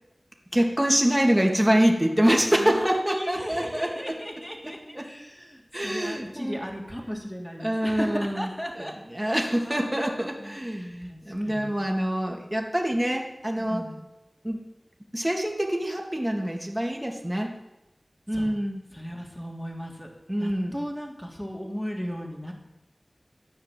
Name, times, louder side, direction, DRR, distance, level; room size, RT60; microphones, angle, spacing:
voice 1, 0.5-4.2 4.7-5.1 5.7-6.6 7.6-8.5 8.8-8.9 9.1-13.8 14.4-14.6 15.1-17.5 18.3-18.8 20.3-20.8, equal, 15° right, 1 dB, 2.8 m, -25 dB
voice 2, 2.6-8.9 9.2-10.1 10.4-11.8 13.6-14.0 18.3-18.6 18.9-20.1 20.4-22.5, equal, 5° left, 0 dB, 3.2 m, -36 dB
14.5 x 9.5 x 7.7 m, 0.95 s
wide cardioid pair, 55°, 0 cm